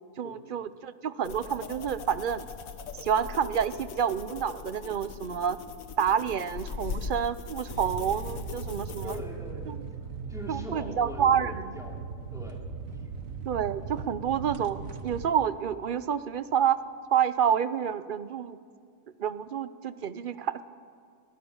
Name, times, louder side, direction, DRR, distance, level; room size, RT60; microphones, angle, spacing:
voice 1, 0.2-2.5 3.0-5.6 6.0-9.2 9.7-9.8 10.5-11.6 13.5-16.8 17.1-18.6 19.2-20.6, right 8 dB, 50° right, 14 dB, 0.6 m, -28 dB
sound 1, 1.2-9.2, left 5 dB, 70° left, 1.5 m, -40 dB
sound 2, 7.7-15.3, right 5 dB, 70° right, 1.4 m, -39 dB
voice 2, 9.0-9.8 10.3-12.7, equal, ahead, 0 dB, 2.6 m, -41 dB
22.5 x 17.0 x 7.2 m, 2.1 s
omnidirectional pair, 1.5 m